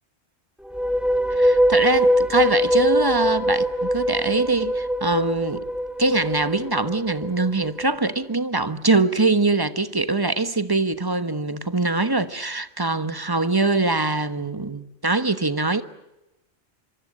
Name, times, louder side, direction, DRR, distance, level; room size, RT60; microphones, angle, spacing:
sound 1, 0.6-7.9, equal, ahead, 1.3 m, -22 dB
voice 1, 1.3-5.7 6.0-15.8, right 3 dB, 20° right, 1.1 m, -23 dB
26.0 x 24.0 x 7.7 m
omnidirectional pair, 1.2 m